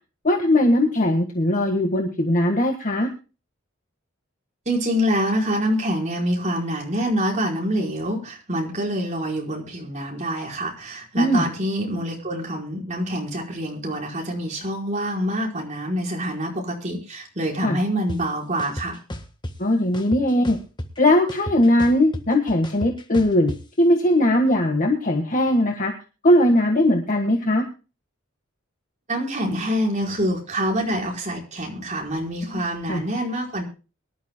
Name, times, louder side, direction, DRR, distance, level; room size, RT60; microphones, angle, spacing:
voice 1, 0.2-3.1 11.2-11.5 17.6-17.8 19.6-20.6 21.0-23.5 23.8-25.9 26.2-27.6 32.5-33.0, left 1 dB, 40° left, 3 dB, 1.6 m, -19 dB
voice 2, 4.7-19.0 29.1-33.6, equal, 35° right, -1 dB, 4.6 m, -26 dB
sound 1, 18.1-18.2 18.6-19.5 19.9-21.0 21.3-23.6, equal, 20° left, 1.5 m, -33 dB
23.5 x 12.0 x 2.2 m, 0.33 s
head